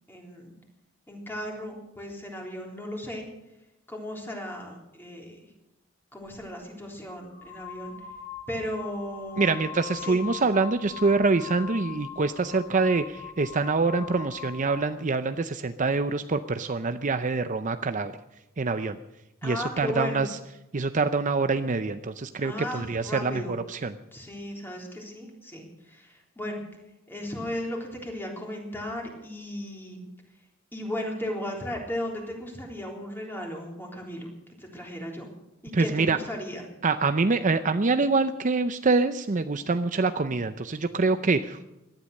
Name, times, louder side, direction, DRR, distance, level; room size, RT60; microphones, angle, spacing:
voice 1, 0.1-0.6 1.1-3.3 3.9-5.5 6.1-7.9 8.5-9.5 9.9-10.2 19.4-20.3 22.4-23.6 24.1-26.6 27.1-30.0 30.7-34.3 34.6-35.3 35.6-36.7, left 1 dB, 10° left, 0 dB, 3.6 m, -36 dB
sound 1, 6.2-6.4 7.2-14.9, left 9 dB, 45° left, 6.7 m, -42 dB
voice 2, 9.4-18.1 18.6-19.0 19.4-20.3 20.7-23.9 35.7-36.2 36.8-41.7, right 3 dB, 40° right, 10 dB, 0.6 m, -25 dB
18.0 x 12.0 x 6.6 m, 0.92 s
head